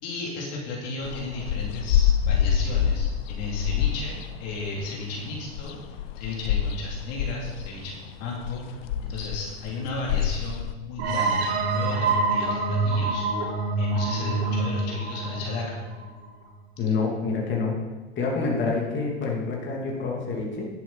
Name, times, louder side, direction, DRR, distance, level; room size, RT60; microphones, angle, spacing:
voice 1, 0.0-15.8, left 2 dB, 55° left, -2 dB, 2.6 m, -34 dB
sound 1, 1.0-10.7, left 9 dB, 70° left, 0.7 m, -26 dB
sound 2, 11.0-16.5, right 3 dB, 70° right, 2.5 m, -26 dB
voice 2, 16.8-17.7 18.2-20.6, left 4 dB, 40° left, -2 dB, 2.6 m, -27 dB
11.0 x 7.8 x 4.0 m, 1.2 s
hypercardioid pair, 90°, 30 cm